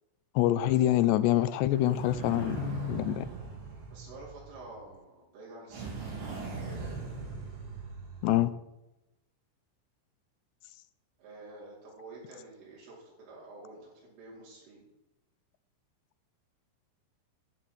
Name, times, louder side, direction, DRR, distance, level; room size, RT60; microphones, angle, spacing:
voice 1, 0.4-3.3 8.2-8.5, left 13 dB, 75° left, 14 dB, 2.7 m, -26 dB
sound 1, 1.7-4.8 5.7-8.4, right 4 dB, 65° right, 7.3 m, -40 dB
voice 2, 3.9-6.5 11.2-14.8, right 2 dB, 90° right, -5 dB, 7.6 m, -49 dB
13.0 x 11.5 x 9.3 m, 0.94 s
omnidirectional pair, 5.5 m